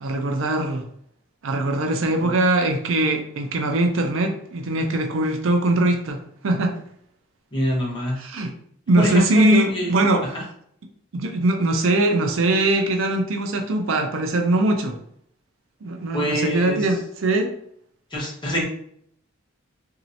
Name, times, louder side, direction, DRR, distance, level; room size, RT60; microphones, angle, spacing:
voice 1, 0.0-0.9 1.4-6.2 6.4-6.7 8.2-8.5 8.9-10.4 11.1-15.0 15.8-17.5, right 2 dB, 70° right, 4 dB, 0.5 m, -21 dB
voice 2, 7.5-8.2 9.0-9.9 10.3-10.4 16.1-16.8 18.1-18.6, equal, 25° left, -3 dB, 0.9 m, -24 dB
3.0 x 2.7 x 2.7 m, 0.66 s
head